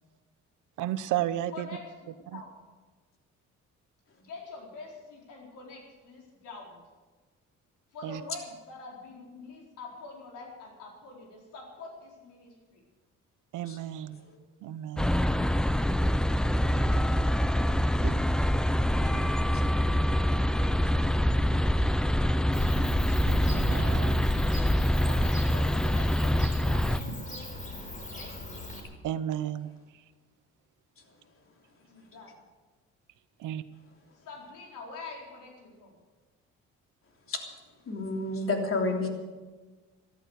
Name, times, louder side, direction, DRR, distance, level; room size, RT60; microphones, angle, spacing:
voice 1, 0.8-1.7 2.3-2.4 8.0-8.2 13.5-14.2 14.6-15.1 16.7-17.1 18.0-18.2 19.1-19.4 21.1-21.4 23.2-24.2 29.0-29.7 33.4-33.6, right 12 dB, 85° right, 13 dB, 0.9 m, -34 dB
voice 2, 1.5-2.5 4.3-6.8 7.9-12.8 25.0-28.3 31.9-32.4 34.2-36.0, left 3 dB, 85° left, -1 dB, 4.6 m, -46 dB
sound 1, 15.0-27.0, equal, ahead, 0.5 m, -25 dB
Bird / Cricket, 22.5-28.8, left 1 dB, 25° left, 3.9 m, -37 dB
voice 3, 37.9-39.1, left 2 dB, 45° left, 2 dB, 3.2 m, -29 dB
14.0 x 13.5 x 6.5 m, 1.3 s
cardioid pair, 90°, 30 cm